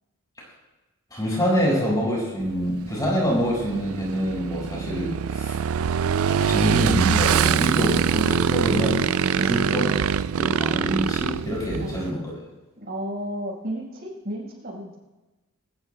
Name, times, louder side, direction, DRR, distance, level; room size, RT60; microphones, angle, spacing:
voice 1, 1.1-5.6 6.3-9.9 10.3-12.2, equal, 15° left, -3 dB, 5.1 m, -26 dB
Motorcycle / Engine, 2.4-12.1, right 7 dB, 70° right, 0.4 m, -24 dB
voice 2, 12.8-15.0, equal, 45° right, -3 dB, 4.7 m, -33 dB
20.5 x 19.5 x 2.2 m, 1.1 s
head